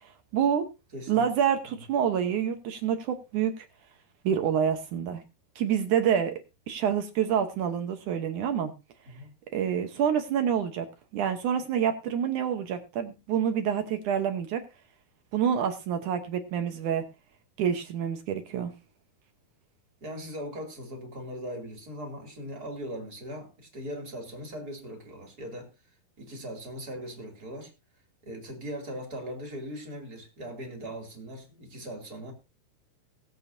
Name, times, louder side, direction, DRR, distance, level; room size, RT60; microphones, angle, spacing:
voice 1, 0.3-0.7 1.1-3.7 4.2-5.2 5.6-6.4 6.7-8.7 9.5-10.9 11.1-14.6 15.3-17.1 17.6-18.7, right 8 dB, 65° right, 2.2 m, -27 dB
voice 2, 0.9-1.2 1.7-1.8 9.1-9.3 20.0-25.7 26.2-27.7 28.2-32.3, equal, 25° right, 2.8 m, -39 dB
20.5 x 8.0 x 2.7 m
omnidirectional pair, 4.5 m